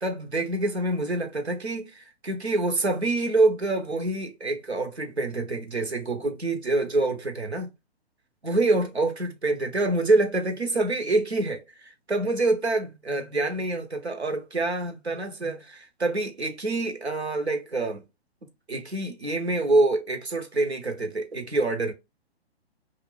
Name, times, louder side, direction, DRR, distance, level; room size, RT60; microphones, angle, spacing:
voice 1, 0.0-7.7 8.4-18.0 18.7-21.9, right 2 dB, 85° right, 0.9 m, -26 dB
2.4 x 2.3 x 3.5 m
figure-of-eight pair, 125°, 32 cm